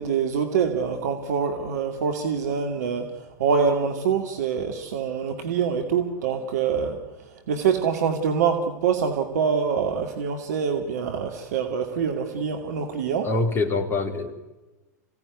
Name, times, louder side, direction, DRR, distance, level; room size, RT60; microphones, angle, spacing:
voice 1, 0.0-7.0 7.3-13.3, right 6 dB, 60° right, 6 dB, 2.3 m, -25 dB
voice 2, 13.2-14.4, left 3 dB, 25° left, 4 dB, 3.8 m, -25 dB
26.5 x 17.0 x 9.7 m, 1.1 s
figure-of-eight pair, 95°, 10 cm